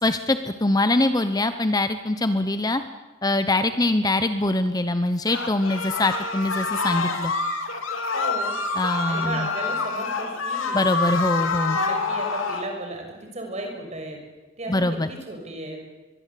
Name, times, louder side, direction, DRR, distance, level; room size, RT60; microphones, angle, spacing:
voice 1, 0.0-2.8 3.2-7.3 8.8-9.5 10.7-11.8 14.7-15.1, left 2 dB, 20° left, 10 dB, 0.9 m, -23 dB
sound 1, 5.3-12.7, left 4 dB, 80° left, 2.8 m, -27 dB
voice 2, 8.1-8.5 9.1-10.9 11.7-13.1 13.3-14.2 14.6-15.8, right 1 dB, 35° right, 2 dB, 6.1 m, -35 dB
24.0 x 22.0 x 8.4 m, 1.2 s
head